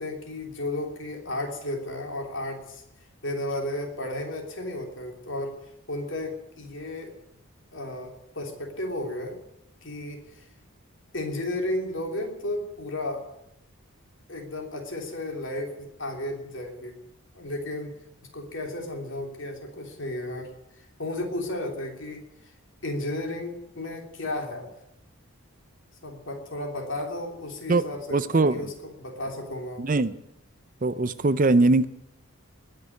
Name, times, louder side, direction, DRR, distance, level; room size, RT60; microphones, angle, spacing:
voice 1, 0.0-2.8 3.2-7.1 7.7-9.4 9.8-10.5 11.1-13.3 14.3-17.0 17.3-18.0 18.3-22.5 22.8-24.7 26.0-29.9, left 1 dB, 55° left, 2 dB, 3.3 m, -33 dB
voice 2, 27.7-28.7 29.8-30.2 30.8-31.8, right 2 dB, 35° right, 14 dB, 0.5 m, -22 dB
20.0 x 6.7 x 9.6 m, 0.81 s
head